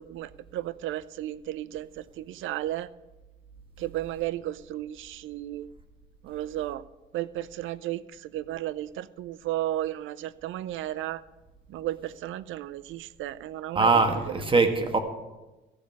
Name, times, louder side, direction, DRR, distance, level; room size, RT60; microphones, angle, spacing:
voice 1, 0.0-2.9 3.8-5.7 6.2-6.8 7.1-11.2 11.7-14.4, right 14 dB, 85° right, 18 dB, 0.5 m, -34 dB
voice 2, 13.7-15.0, right 3 dB, 25° right, 6 dB, 1.8 m, -22 dB
15.0 x 5.3 x 9.2 m, 1.1 s
cardioid pair, 90°, 20 cm